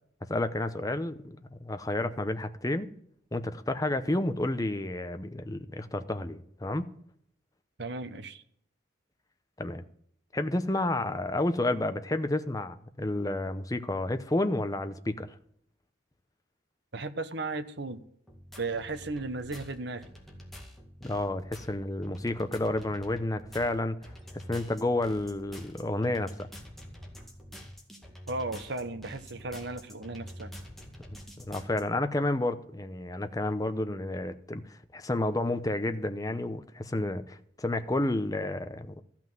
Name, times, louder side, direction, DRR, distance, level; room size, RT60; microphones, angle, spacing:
voice 1, 0.3-1.2 1.5-2.9 3.3-6.9 9.6-9.8 10.3-15.4 21.0-24.0 24.3-26.5 31.1-38.9, left 1 dB, 20° left, 0.8 m, -30 dB
voice 2, 7.8-8.4 16.9-18.0 18.6-20.1 28.3-30.5, right 3 dB, 55° right, 1.0 m, -35 dB
sound 1, 18.3-31.8, equal, ahead, 2.1 m, -47 dB
14.0 x 6.0 x 9.2 m
head